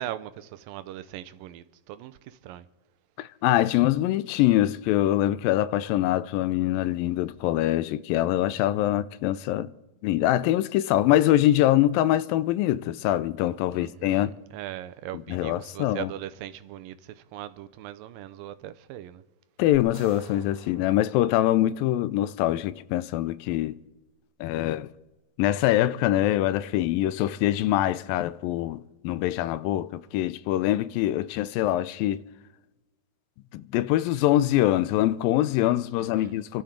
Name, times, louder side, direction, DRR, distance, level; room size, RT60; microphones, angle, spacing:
voice 1, 0.0-2.7 13.7-19.2 36.0-36.4, right 12 dB, 85° right, 2.4 m, -40 dB
voice 2, 3.2-9.7 10.0-14.4 15.3-16.1 19.6-23.8 24.4-24.9 25.4-32.3 33.5-36.6, left 14 dB, 85° left, 2.4 m, -24 dB
sound 1, 19.7-22.1, right 2 dB, 35° right, 5.7 m, -51 dB
28.5 x 12.0 x 3.8 m
omnidirectional pair, 4.0 m